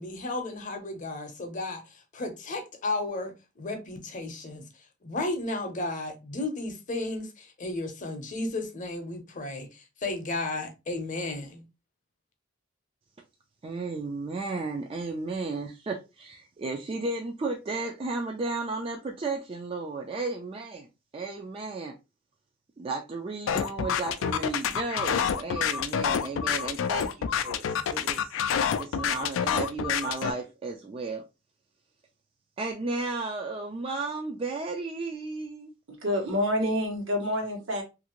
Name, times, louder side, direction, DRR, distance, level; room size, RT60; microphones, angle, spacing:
voice 1, 0.0-4.6 5.0-11.6, left 2 dB, 40° left, 0.7 m, -34 dB
voice 2, 13.6-20.9 21.1-21.9 22.8-28.4 28.8-31.2 32.6-35.7, right 3 dB, 30° right, 0.3 m, -34 dB
sound 1, 23.5-30.3, left 7 dB, 85° left, 0.3 m, -27 dB
voice 3, 35.9-37.8, left 1 dB, 80° right, 1.0 m, -28 dB
2.8 x 2.5 x 2.8 m
head